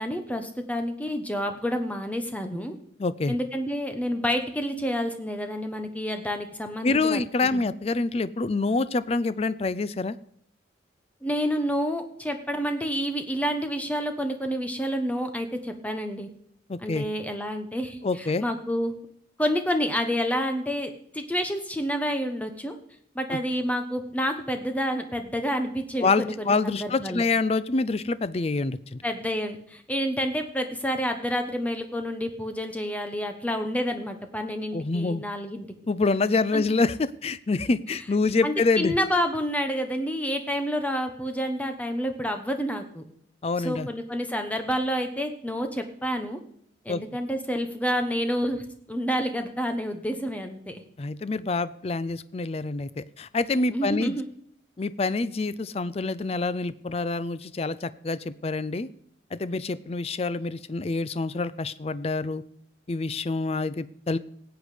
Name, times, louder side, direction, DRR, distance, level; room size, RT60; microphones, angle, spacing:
voice 1, 0.0-2.8 3.3-7.7 11.2-16.3 16.8-19.0 19.4-22.7 23.1-27.2 29.0-35.7 36.5-36.6 38.4-43.0 43.6-46.4 46.8-50.8 53.7-54.2, equal, 10° left, 6 dB, 1.1 m, -29 dB
voice 2, 3.0-3.3 6.8-10.2 16.7-17.1 18.0-18.4 26.0-29.0 34.7-35.2 35.9-39.0 43.4-43.9 46.9-47.0 51.0-54.2 54.8-58.9 59.3-62.4 62.9-64.2, left 3 dB, 35° left, 16 dB, 0.4 m, -26 dB
18.5 x 8.1 x 5.0 m, 0.68 s
head